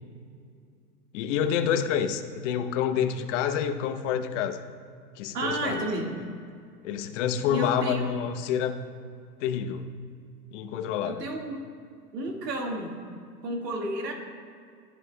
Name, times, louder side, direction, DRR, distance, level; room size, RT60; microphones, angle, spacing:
voice 1, 1.1-4.6 5.2-5.8 6.8-8.8 9.4-9.9 10.5-11.2, left 8 dB, 50° left, 9 dB, 0.9 m, -28 dB
voice 2, 5.3-6.3 7.5-8.1 11.0-11.7 12.1-13.0 13.4-14.1, right 1 dB, 80° right, 1 dB, 1.9 m, -31 dB
14.0 x 10.5 x 2.2 m, 2.3 s
hypercardioid pair, 115°, 48 cm